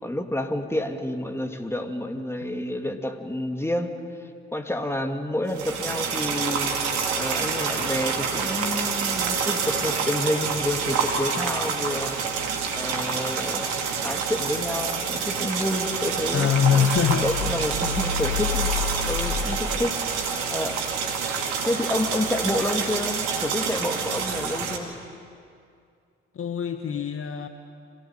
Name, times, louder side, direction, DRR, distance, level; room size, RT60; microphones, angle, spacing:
voice 1, 0.0-3.9 4.5-6.8 7.1-12.2 12.7-13.7 14.0-16.9 17.2-18.7 19.1-20.0 20.5-21.1 21.6-24.9, left 1 dB, 5° left, 5 dB, 2.6 m, -29 dB
sound 1, 5.5-24.8, right 6 dB, 75° right, 2.7 m, -27 dB
voice 2, 16.3-17.3 26.3-27.5, left 8 dB, 40° left, 7 dB, 1.5 m, -23 dB
sound 2, 16.9-20.5, left 6 dB, 85° left, 3.4 m, -30 dB
26.5 x 16.5 x 9.3 m, 2.3 s
hypercardioid pair, 50°, 34 cm